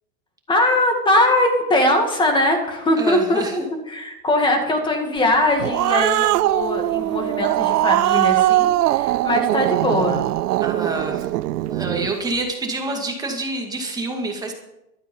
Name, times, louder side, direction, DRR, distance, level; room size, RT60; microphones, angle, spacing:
voice 1, 0.5-3.6 3.9-10.2, left 1 dB, 10° left, 4 dB, 2.2 m, -21 dB
voice 2, 3.0-3.6 10.6-11.3 11.7-14.5, right 2 dB, 10° right, 1 dB, 2.3 m, -27 dB
Growling, 5.3-12.1, right 15 dB, 85° right, 0.6 m, -21 dB
14.5 x 13.0 x 5.6 m, 0.90 s
supercardioid pair, 155°, 46 cm